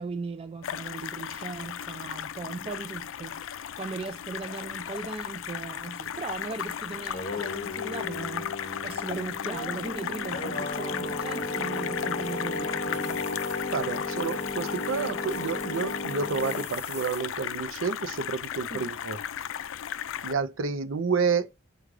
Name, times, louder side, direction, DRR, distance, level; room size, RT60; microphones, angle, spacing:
voice 1, 0.0-13.3 18.7-18.9, right 3 dB, 30° right, 0.4 m, -38 dB
sound 1, 0.6-20.3, left 9 dB, 70° left, 0.3 m, -36 dB
Singing, 6.9-16.7, left 2 dB, 40° left, 0.9 m, -34 dB
sound 2, 11.0-17.3, left 3 dB, 15° left, 1.1 m, -48 dB
voice 2, 13.7-19.2 20.2-21.5, right 5 dB, 75° right, 0.5 m, -30 dB
4.7 x 2.3 x 3.7 m
head